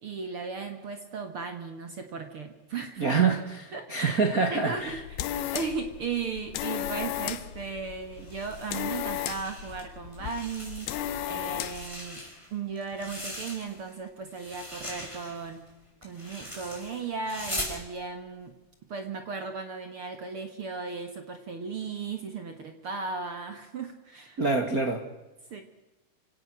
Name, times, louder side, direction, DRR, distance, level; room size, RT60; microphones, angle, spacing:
voice 1, 0.0-3.1 3.7-4.2 4.5-11.0 11.3-12.2 12.5-15.6 16.0-18.5 18.9-24.4 25.5-25.6, right 5 dB, 50° right, 6 dB, 1.7 m, -36 dB
voice 2, 3.0-5.0 24.4-25.1, right 4 dB, 85° right, 5 dB, 0.7 m, -26 dB
sound 1, 4.8-12.0, left 12 dB, 75° left, 2.7 m, -35 dB
sound 2, 8.1-9.8 10.1-11.1 11.5-13.9 14.3-17.8, left 1 dB, 5° left, 5.5 m, -40 dB
28.0 x 17.0 x 6.3 m, 1.1 s
omnidirectional pair, 4.6 m